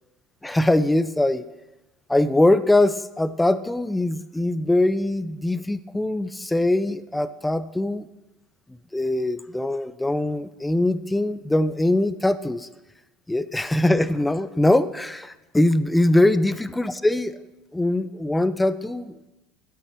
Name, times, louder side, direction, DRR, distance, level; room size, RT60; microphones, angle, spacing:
voice 1, 0.4-1.4 2.1-8.1 8.9-12.7 13.3-17.3 17.7-19.1, left 1 dB, 5° left, 14 dB, 0.5 m, -22 dB
12.5 x 8.6 x 4.5 m, 1.0 s
supercardioid pair, 135°, 0 cm